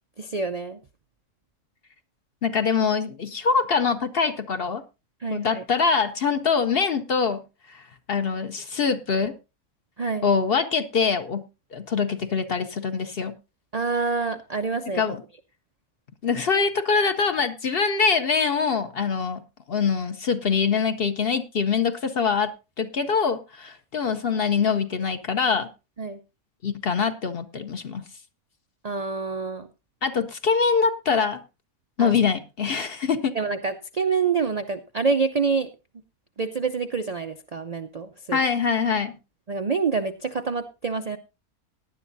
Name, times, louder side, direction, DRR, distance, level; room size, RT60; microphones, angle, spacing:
voice 1, 0.2-0.8 5.2-5.6 10.0-10.3 13.7-15.0 26.0-26.2 28.8-29.7 32.0-32.1 33.3-35.7 36.4-38.4 39.5-41.2, right 4 dB, 75° right, 8 dB, 0.3 m, -27 dB
voice 2, 2.4-4.8 5.3-9.4 10.2-13.4 15.0-15.2 16.2-22.5 22.8-25.7 26.6-28.1 30.0-31.4 32.0-33.4 38.3-39.2, left 5 dB, 50° left, 9 dB, 0.8 m, -24 dB
18.0 x 10.0 x 2.6 m, 0.28 s
omnidirectional pair, 1.6 m